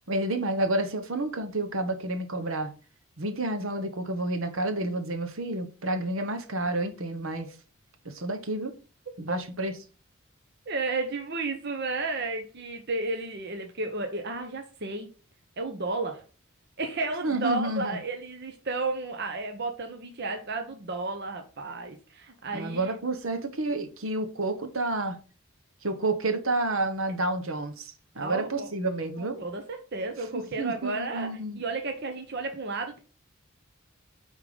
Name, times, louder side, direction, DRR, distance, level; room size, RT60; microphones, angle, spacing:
voice 1, 0.1-2.7 3.2-7.5 8.0-8.7 9.2-9.7 17.2-18.0 22.5-25.2 25.8-29.4 30.3-31.6, right 2 dB, 75° right, 1.2 m, -30 dB
voice 2, 10.7-15.1 15.6-16.3 16.8-22.9 28.2-28.7 29.2-33.0, right 3 dB, 50° right, 1.0 m, -33 dB
9.0 x 3.8 x 4.9 m
head